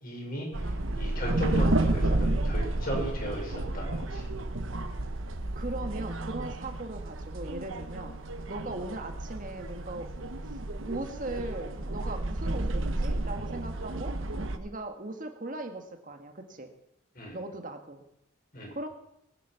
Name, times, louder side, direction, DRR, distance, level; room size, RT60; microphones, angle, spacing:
voice 1, 0.0-4.3 17.2-17.4 18.5-18.7, equal, 45° left, -1 dB, 5.5 m, -36 dB
sound 1, 0.5-14.6, right 2 dB, 75° right, 1.1 m, -31 dB
voice 2, 5.6-8.2 8.5-10.1 10.5-10.6 10.9-14.2 14.6-16.7 17.3-18.1 18.7-18.9, right 2 dB, 40° right, 5 dB, 1.7 m, -39 dB
19.5 x 10.0 x 5.8 m, 0.80 s
head